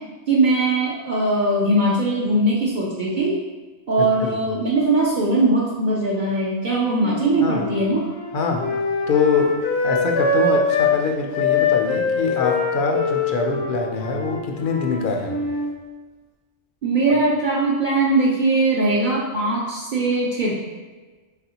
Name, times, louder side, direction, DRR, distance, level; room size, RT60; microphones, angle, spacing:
voice 1, 0.3-3.3 3.9-8.0 16.8-20.5, right 2 dB, 55° right, -5 dB, 0.7 m, -20 dB
voice 2, 4.0-4.3 7.4-7.6 8.3-8.7 9.1-15.4 17.1-17.2, left 4 dB, 60° left, 2 dB, 0.6 m, -24 dB
Wind instrument woodwind instrument, 7.0-10.9 11.3-15.7, left 4 dB, 80° left, 1.0 m, -23 dB
4.1 x 3.5 x 2.8 m, 1.3 s
omnidirectional pair, 1.1 m